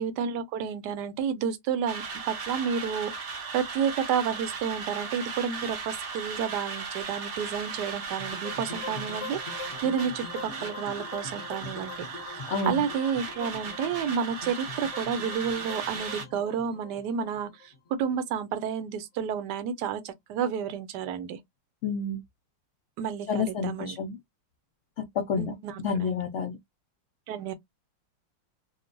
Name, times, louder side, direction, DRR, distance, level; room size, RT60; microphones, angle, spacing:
voice 1, 0.0-12.0 12.7-21.4 23.0-24.0 25.4-26.1 27.3-27.5, right 7 dB, 75° right, 1.1 m, -31 dB
sound 1, 1.9-16.2, right 4 dB, 55° right, 0.9 m, -37 dB
sound 2, 8.2-18.4, left 4 dB, 50° left, 1.0 m, -43 dB
voice 2, 12.5-12.8 21.8-22.2 23.3-24.2 25.0-25.5 25.8-26.6, left 5 dB, 80° left, 0.6 m, -29 dB
3.0 x 2.1 x 2.5 m
omnidirectional pair, 1.9 m